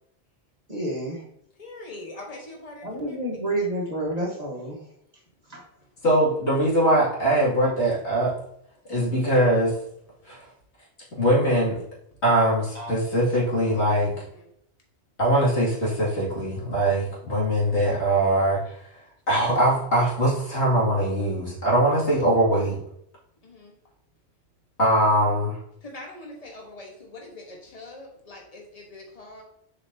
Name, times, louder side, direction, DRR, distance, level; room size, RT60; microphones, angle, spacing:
voice 1, 0.7-1.2 2.8-4.8 5.5-5.7 12.7-13.1, right 1 dB, 40° right, -1 dB, 1.4 m, -29 dB
voice 2, 1.6-3.2 5.8-5.9 14.2-14.5 23.4-23.7 25.8-29.4, left 2 dB, 35° left, 0 dB, 1.4 m, -43 dB
voice 3, 6.0-8.3 8.9-9.7 10.3-10.4 11.1-11.8 12.2-14.1 15.2-18.8 19.3-22.8 24.8-25.6, right 1 dB, 85° left, -6 dB, 2.9 m, -22 dB
7.0 x 5.1 x 2.8 m, 0.72 s
omnidirectional pair, 1.1 m